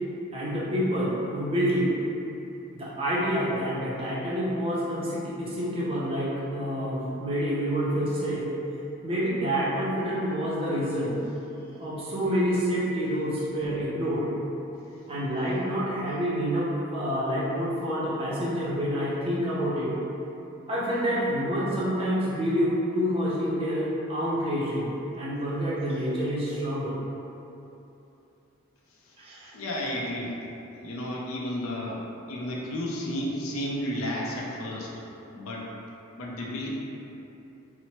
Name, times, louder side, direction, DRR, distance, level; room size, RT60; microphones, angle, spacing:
voice 1, 0.3-1.9 2.7-8.4 9.0-11.1 11.8-14.3 15.1-19.9 20.7-24.9 25.2-27.0 29.2-29.5, equal, 25° right, -7 dB, 0.5 m, -28 dB
voice 2, 29.5-30.3 30.8-34.9 35.3-35.7 36.2-36.7, left 1 dB, 85° left, -3 dB, 0.4 m, -32 dB
2.9 x 2.0 x 2.8 m, 2.9 s
head